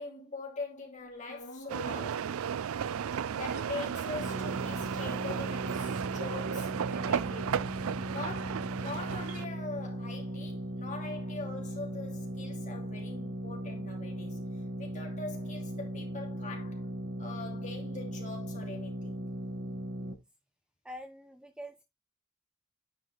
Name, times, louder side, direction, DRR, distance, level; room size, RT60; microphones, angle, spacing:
voice 1, 0.0-2.3 3.3-7.8 8.1-14.5 14.8-16.9 17.2-19.3, left 3 dB, 35° left, 2.7 m, -43 dB
sound 1, 1.2-2.4 2.8-5.3 5.7-5.8 6.0-10.5 10.8-14.9, left 1 dB, 60° left, 3.0 m, -54 dB
sound 2, 1.7-9.5, right 8 dB, 75° right, 0.4 m, -34 dB
sound 3, 4.2-20.1, right 1 dB, 55° right, 1.3 m, -38 dB
voice 2, 20.8-21.8, equal, 5° right, 0.6 m, -45 dB
9.9 x 4.7 x 3.3 m
head